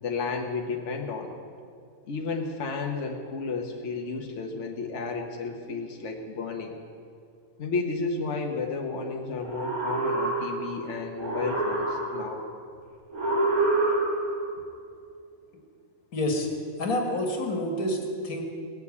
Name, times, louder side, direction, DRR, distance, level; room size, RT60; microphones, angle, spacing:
voice 1, 0.0-1.3 2.0-6.7 7.6-12.4, left 4 dB, 55° left, 2 dB, 1.3 m, -32 dB
sound 1, 9.4-10.8 11.2-12.4 13.1-14.4, right 2 dB, 80° right, 3.1 m, -27 dB
voice 2, 16.1-16.5 16.8-18.4, left 1 dB, 85° left, 2 dB, 2.3 m, -28 dB
18.0 x 7.0 x 8.4 m, 2.3 s
omnidirectional pair, 1.5 m